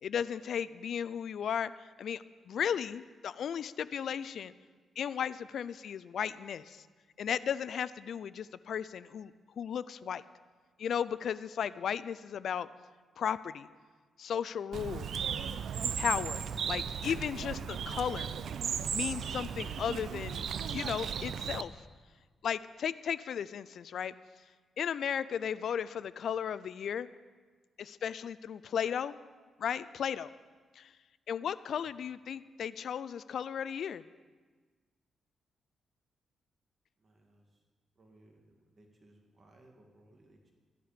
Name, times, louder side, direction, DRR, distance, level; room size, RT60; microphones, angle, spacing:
voice 1, 0.0-1.7 2.0-4.5 5.0-6.8 7.2-10.2 10.8-12.7 13.2-13.7 14.2-15.1 16.0-16.4 16.7-18.3 18.9-20.5 20.7-21.7 22.4-24.1 24.8-27.1 27.8-29.2 29.6-30.3 30.8-30.9 31.3-34.0, left 8 dB, 70° left, 16 dB, 0.4 m, -35 dB
Bird, 14.7-21.6, right 7 dB, 70° right, 0.5 m, -36 dB
voice 2, 37.0-37.5 38.0-40.5, right 1 dB, 40° right, 2 dB, 2.0 m, -62 dB
14.0 x 11.5 x 5.0 m, 1.4 s
cardioid pair, 95°, 0 cm